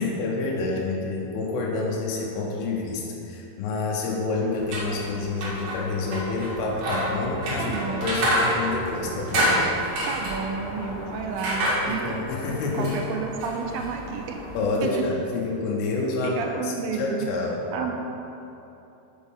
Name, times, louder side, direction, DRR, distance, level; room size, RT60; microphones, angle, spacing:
voice 1, 0.0-9.9 11.9-13.0 14.5-17.6, left 3 dB, 90° left, -2 dB, 2.7 m, -28 dB
sound 1, 4.5-14.6, right 1 dB, 55° right, 2.5 m, -29 dB
Thunder, 6.6-13.0 13.4-14.0 14.4-15.2, left 1 dB, 55° left, 2.6 m, -42 dB
voice 2, 7.6-8.1 10.0-12.2 12.7-14.4 14.8-15.0 16.2-17.3 17.7-17.9, right 5 dB, 80° right, 2 dB, 2.3 m, -31 dB
8.4 x 6.3 x 3.6 m, 2.9 s
omnidirectional pair, 4.3 m